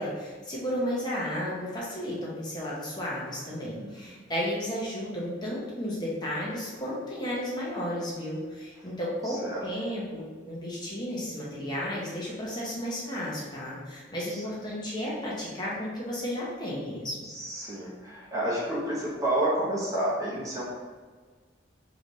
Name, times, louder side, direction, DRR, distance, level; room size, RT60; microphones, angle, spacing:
voice 1, 0.0-17.3, equal, 25° left, -6 dB, 0.9 m, -33 dB
voice 2, 9.3-9.6 17.4-20.6, right 1 dB, 20° right, -6 dB, 0.9 m, -30 dB
3.9 x 3.2 x 3.9 m, 1.5 s
head